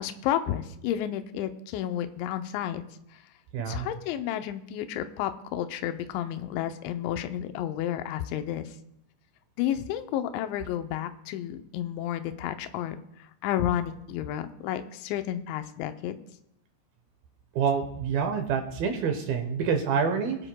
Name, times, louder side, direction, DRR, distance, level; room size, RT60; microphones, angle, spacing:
voice 1, 0.0-2.9 3.7-8.7 9.6-13.0 13.4-16.1, left 11 dB, 85° left, 8 dB, 3.0 m, -31 dB
voice 2, 3.5-3.9 17.6-20.4, right 6 dB, 75° right, 5 dB, 2.3 m, -27 dB
20.0 x 9.9 x 2.2 m, 0.80 s
omnidirectional pair, 5.2 m